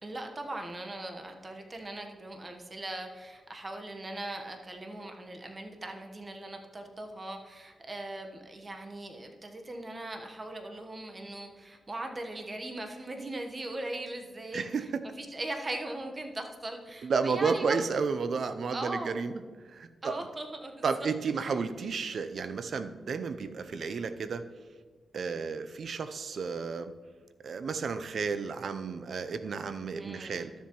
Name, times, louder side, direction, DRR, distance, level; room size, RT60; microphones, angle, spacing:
voice 1, 0.0-17.8 18.7-19.2 20.0-21.6 30.0-30.5, right 1 dB, 35° right, 4 dB, 1.1 m, -40 dB
voice 2, 14.5-15.0 17.0-19.4 19.7-20.3 20.8-24.4 25.1-26.9 27.4-30.5, right 5 dB, 70° right, 11 dB, 0.5 m, -32 dB
12.5 x 7.3 x 3.0 m, 1.4 s
cardioid pair, 70°, 0 cm